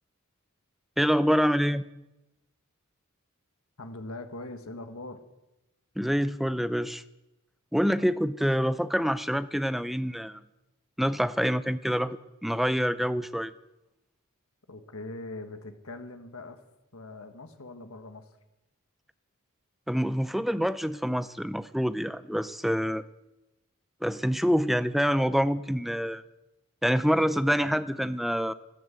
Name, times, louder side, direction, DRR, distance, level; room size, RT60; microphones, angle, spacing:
voice 1, 1.0-1.8 6.0-7.0 7.7-10.4 11.0-13.5 19.9-23.0 24.0-26.2 26.8-28.5, equal, ahead, 14 dB, 0.5 m, -26 dB
voice 2, 3.8-5.2 14.7-16.6 16.9-18.3 27.3-27.8, left 2 dB, 65° left, 8 dB, 1.6 m, -42 dB
13.5 x 12.0 x 8.1 m, 0.96 s
head